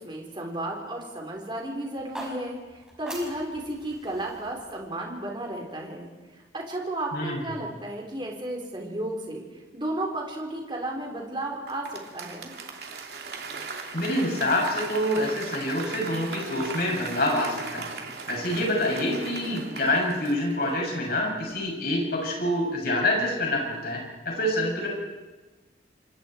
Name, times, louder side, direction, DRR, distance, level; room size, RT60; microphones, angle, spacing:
voice 1, 0.0-6.1 6.5-9.4 9.7-12.5, right 1 dB, 25° right, 0 dB, 4.1 m, -33 dB
sound 1, 1.9-6.1, right 1 dB, 5° right, 5.6 m, -44 dB
Applause / Crowd, 11.7-21.1 21.5-21.6, right 4 dB, 60° right, 2.8 m, -38 dB
voice 2, 13.9-17.8 18.3-24.9, left 1 dB, 55° left, -1 dB, 7.6 m, -26 dB
27.5 x 26.0 x 4.6 m, 1.2 s
head